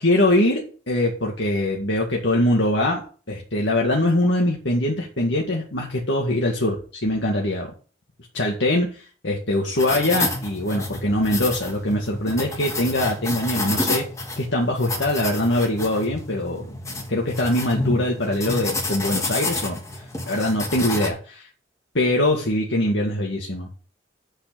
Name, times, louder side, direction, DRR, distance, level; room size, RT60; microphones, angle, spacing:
voice 1, 0.0-7.7 8.3-14.1 14.4-16.7 17.1-19.8 20.3-21.5 21.9-23.7, left 1 dB, 85° left, -1 dB, 2.0 m, -23 dB
sound 1, 9.7-21.1, left 2 dB, 15° left, 1.5 m, -29 dB
8.5 x 5.8 x 6.9 m, 0.39 s
head